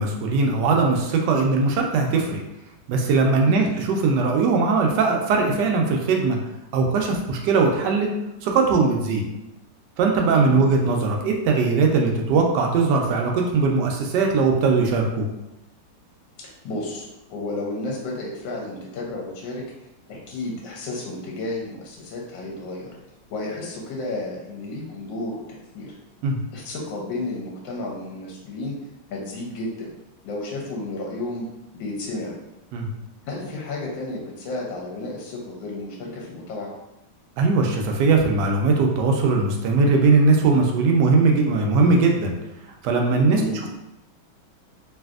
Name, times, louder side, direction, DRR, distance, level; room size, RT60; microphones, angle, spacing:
voice 1, 0.0-2.4 2.9-6.4 6.7-8.1 8.4-9.2 10.0-15.2 26.2-26.4 32.7-32.9 37.4-42.3 42.8-43.4, right 4 dB, 75° right, 2 dB, 1.0 m, -20 dB
voice 2, 16.4-19.6 20.1-22.9 23.3-25.4 25.7-25.9 26.5-28.8 29.1-29.9 30.2-31.5 31.7-32.3 33.3-36.7 43.3-43.6, left 2 dB, 75° left, -2 dB, 1.2 m, -32 dB
3.2 x 2.6 x 2.4 m, 0.91 s
omnidirectional pair, 2.2 m